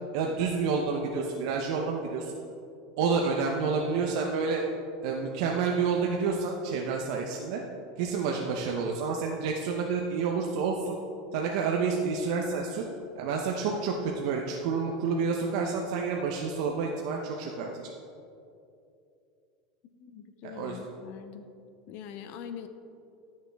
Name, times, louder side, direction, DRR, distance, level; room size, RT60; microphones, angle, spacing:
voice 1, 0.1-2.4 3.0-4.6 5.0-7.6 8.0-11.0 11.3-12.8 13.2-17.9 20.4-20.8, right 5 dB, 65° right, 0 dB, 0.8 m, -29 dB
voice 2, 19.9-21.5 21.9-22.7, left 8 dB, 50° left, 9 dB, 0.7 m, -43 dB
12.0 x 6.5 x 3.5 m, 2.6 s
supercardioid pair, 145°, 4 cm